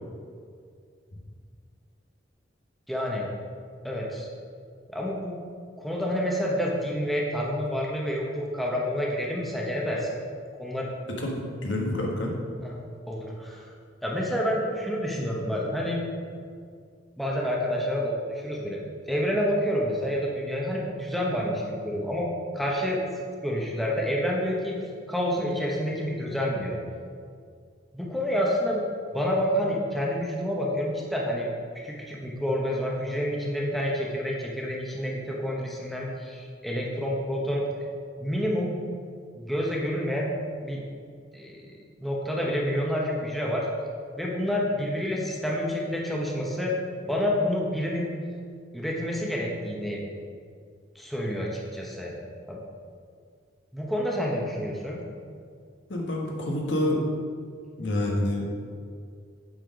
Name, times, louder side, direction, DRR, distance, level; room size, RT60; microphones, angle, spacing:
voice 1, 2.9-3.3 3.8-4.3 4.9-5.4 5.8-10.2 10.6-10.9 12.6-12.8 13.1-13.7 14.0-16.0 17.2-18.8 19.1-22.3 22.5-24.8 25.1-26.8 27.9-28.8 29.1-31.5 31.8-37.6 38.2-38.7 39.3-40.3 40.6-40.8 41.3-43.7 44.2-46.7 47.1-48.1 48.7-50.0 50.9-52.1 52.5-52.6 53.7-55.0, equal, ahead, -3 dB, 0.9 m, -28 dB
voice 2, 11.6-12.3 55.9-57.0 57.8-58.5, left 1 dB, 75° left, -1 dB, 1.3 m, -27 dB
7.7 x 4.3 x 5.1 m, 2.2 s
head